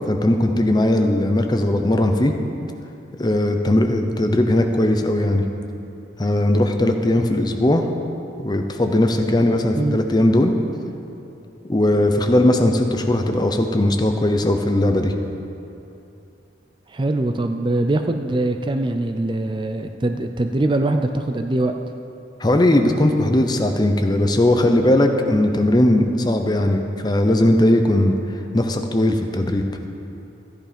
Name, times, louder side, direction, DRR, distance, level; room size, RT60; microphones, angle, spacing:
voice 1, 0.1-2.3 3.2-5.5 6.2-7.8 8.4-10.5 11.7-15.1 22.4-28.1 28.5-29.6, left 1 dB, 25° left, 5 dB, 0.7 m, -18 dB
voice 2, 16.9-21.8, right 2 dB, 25° right, 6 dB, 0.4 m, -22 dB
14.0 x 10.5 x 5.2 m, 2.8 s
head